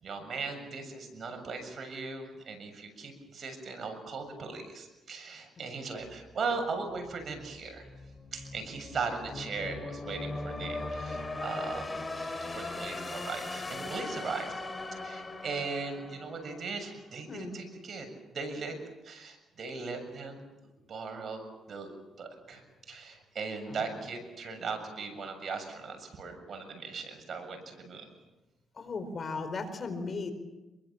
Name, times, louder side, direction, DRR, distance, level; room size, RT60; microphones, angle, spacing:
voice 1, 0.0-7.9 8.3-14.5 15.0-18.8 19.0-20.4 20.9-28.1, right 4 dB, 50° right, 5 dB, 7.2 m, -38 dB
sound 1, 6.1-17.1, left 2 dB, 20° left, 3.6 m, -40 dB
voice 2, 28.8-30.3, left 4 dB, 40° left, 9 dB, 4.5 m, -36 dB
27.5 x 23.0 x 7.4 m, 1.0 s
cardioid pair, 90°, 0 cm